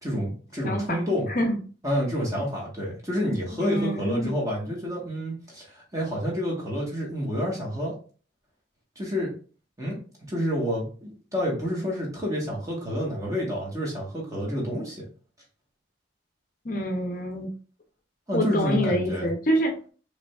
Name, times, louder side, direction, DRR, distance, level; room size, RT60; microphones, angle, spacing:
voice 1, 0.0-1.3 1.8-7.9 8.9-9.3 9.8-10.0 10.3-15.1 18.3-19.3, equal, 15° right, -3 dB, 1.4 m, -29 dB
voice 2, 0.6-1.0 1.3-1.6 3.5-4.3 16.6-17.5 18.3-19.9, equal, 45° left, 4 dB, 0.7 m, -26 dB
4.9 x 3.3 x 2.4 m, 0.39 s
head